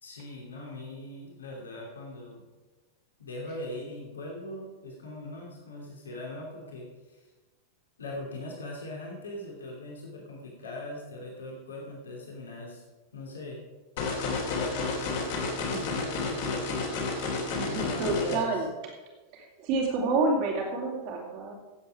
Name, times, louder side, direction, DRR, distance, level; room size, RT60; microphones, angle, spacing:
voice 1, 0.0-2.4 3.2-7.3 8.0-12.8 13.1-13.6 14.2-16.9 17.6-18.6, left 1 dB, 70° left, -1 dB, 2.7 m, -40 dB
sound 1, 14.0-18.4, left 3 dB, 55° left, 3.1 m, -31 dB
voice 2, 17.6-18.7 19.3-21.5, right 3 dB, 45° right, 0 dB, 2.5 m, -29 dB
17.0 x 7.7 x 4.8 m, 1.2 s
figure-of-eight pair, 90°, 0 cm